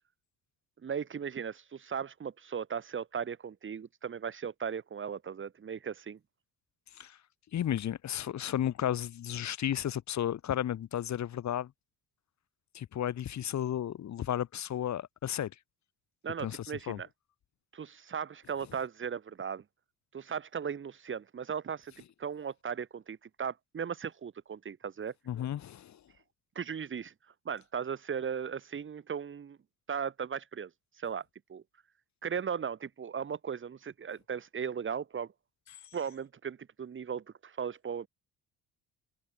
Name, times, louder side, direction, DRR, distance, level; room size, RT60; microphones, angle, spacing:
voice 1, 0.8-6.2 16.2-17.1 17.7-19.6 20.1-21.9 22.2-25.1 26.5-27.1 27.4-29.6 29.9-30.7 31.0-31.6 32.2-35.3 35.9-38.1, right 7 dB, 35° right, 6.2 m, -37 dB
voice 2, 7.5-11.7 12.7-15.5 16.4-16.6 16.9-17.0 25.3-26.0, left 10 dB, 50° left, 5.8 m, -33 dB
cardioid pair, 145°, 35 cm